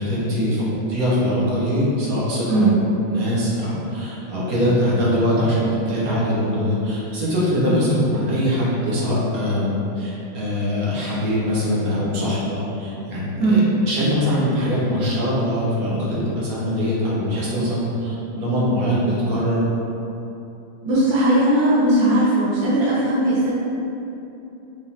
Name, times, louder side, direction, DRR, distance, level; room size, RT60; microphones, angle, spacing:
voice 1, 0.0-2.7 3.1-13.6 13.9-19.7, equal, 55° right, -7 dB, 1.3 m, -22 dB
voice 2, 13.4-13.7 20.8-23.5, right 1 dB, 75° right, -11 dB, 1.7 m, -18 dB
5.0 x 3.6 x 2.7 m, 2.9 s
omnidirectional pair, 2.3 m